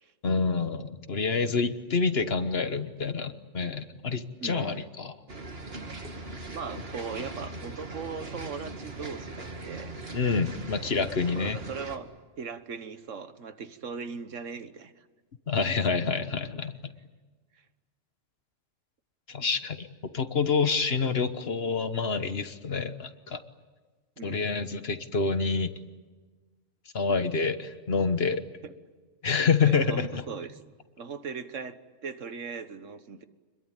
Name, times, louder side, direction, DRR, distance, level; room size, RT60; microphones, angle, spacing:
voice 1, 0.2-5.1 10.1-11.6 15.5-16.7 19.3-19.9 20.1-23.4 24.2-25.7 26.9-28.4 29.2-30.2, left 5 dB, 55° left, 10 dB, 1.5 m, -27 dB
voice 2, 4.4-4.9 6.5-9.9 11.3-12.1 12.4-15.0 17.6-17.7 24.2-24.5 28.6-28.7 29.6-30.6 31.0-33.2, right 5 dB, 80° right, 10 dB, 1.6 m, -39 dB
sound 1, 5.3-12.0, right 2 dB, 50° right, 2.4 m, -40 dB
27.5 x 21.5 x 9.0 m, 1.4 s
omnidirectional pair, 1.3 m